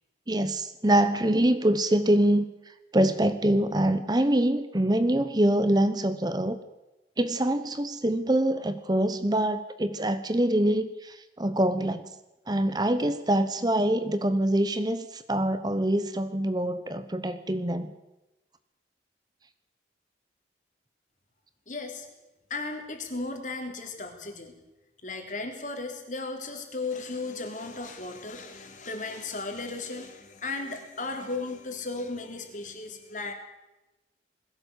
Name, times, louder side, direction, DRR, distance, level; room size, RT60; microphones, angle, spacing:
voice 1, 0.3-2.4 2.9-6.6 7.2-12.1 12.5-17.9, right 1 dB, 25° right, 11 dB, 0.9 m, -25 dB
voice 2, 21.7-22.1 22.5-24.5 25.0-33.3, left 3 dB, 45° left, 4 dB, 3.6 m, -35 dB
21.0 x 16.5 x 8.2 m, 1.0 s
head